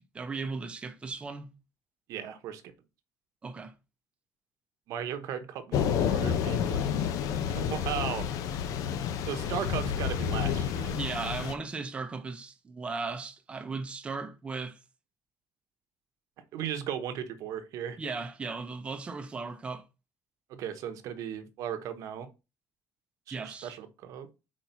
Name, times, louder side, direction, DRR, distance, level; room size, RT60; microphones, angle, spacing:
voice 1, 0.0-1.5 3.4-3.7 10.9-14.8 18.0-19.8 23.3-23.7, right 4 dB, 15° right, 0.7 m, -37 dB
voice 2, 2.1-2.6 4.9-6.9 7.5-8.3 9.3-10.9 16.5-18.0 20.5-22.3 23.3-24.3, right 9 dB, 55° right, 1.0 m, -36 dB
Thunder / Rain, 5.7-11.5, left 8 dB, 60° left, 0.8 m, -30 dB
4.6 x 4.4 x 5.5 m
cardioid pair, 180°, 7 cm